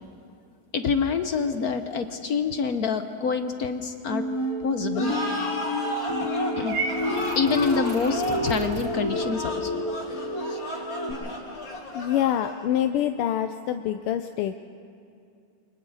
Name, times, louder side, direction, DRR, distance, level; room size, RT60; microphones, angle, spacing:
voice 1, 0.7-4.2 4.6-5.1 6.6-6.8 7.4-9.8 10.5-10.6, left 5 dB, 60° left, 8 dB, 1.0 m, -26 dB
sound 1, 4.1-11.1, equal, 10° left, 4.1 m, -30 dB
sound 2, 4.9-12.8, equal, 40° left, 2.7 m, -33 dB
Purr / Meow, 6.7-8.9, right 4 dB, 65° right, 2.0 m, -34 dB
voice 2, 11.9-14.6, left 11 dB, 85° left, 8 dB, 1.6 m, -26 dB
29.0 x 24.5 x 4.0 m, 2.5 s
omnidirectional pair, 2.4 m